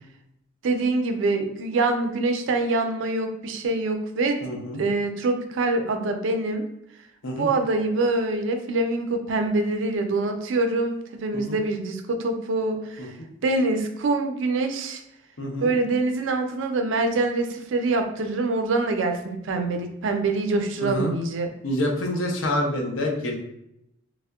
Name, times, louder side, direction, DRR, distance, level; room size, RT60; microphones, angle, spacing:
voice 1, 0.6-4.4 4.8-6.7 7.4-13.1 13.4-15.0 15.6-21.5, right 2 dB, 70° right, 5 dB, 0.4 m, -25 dB
voice 2, 4.4-4.8 7.2-7.5 11.3-11.6 13.0-13.1 15.4-15.7 20.8-21.1 21.6-23.4, left 1 dB, 80° left, 1 dB, 0.6 m, -27 dB
3.5 x 2.0 x 2.2 m, 0.80 s
head